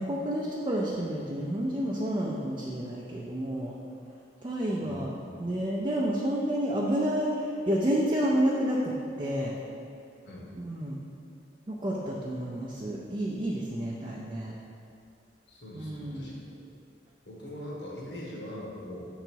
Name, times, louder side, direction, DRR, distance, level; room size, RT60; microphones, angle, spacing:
voice 1, 0.0-3.8 4.4-5.1 5.4-9.5 10.6-11.0 11.7-14.6 15.7-16.3, equal, 25° right, -4 dB, 0.5 m, -30 dB
voice 2, 4.8-5.3 10.2-10.5 15.5-16.7 17.2-19.1, left 1 dB, 80° left, -5 dB, 1.4 m, -42 dB
5.8 x 3.9 x 4.5 m, 2.5 s
head